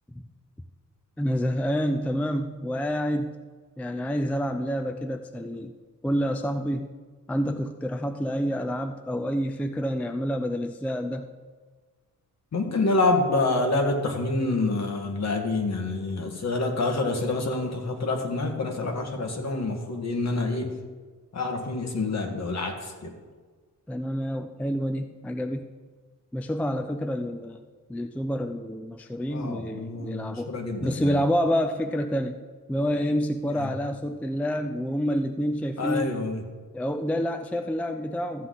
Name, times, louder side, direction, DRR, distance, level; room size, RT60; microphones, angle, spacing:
voice 1, 1.2-3.3 3.8-5.7 6.0-6.9 7.3-11.3 23.9-25.7 26.3-27.6 27.9-30.5 30.8-32.4 32.7-36.2 36.7-38.5, equal, 5° left, 7 dB, 0.4 m, -28 dB
voice 2, 12.5-20.7 21.3-23.1 29.3-31.2 33.5-33.7 35.8-36.4, left 2 dB, 55° left, 3 dB, 1.7 m, -27 dB
14.0 x 8.0 x 3.9 m, 1.4 s
wide cardioid pair, 145°, 33 cm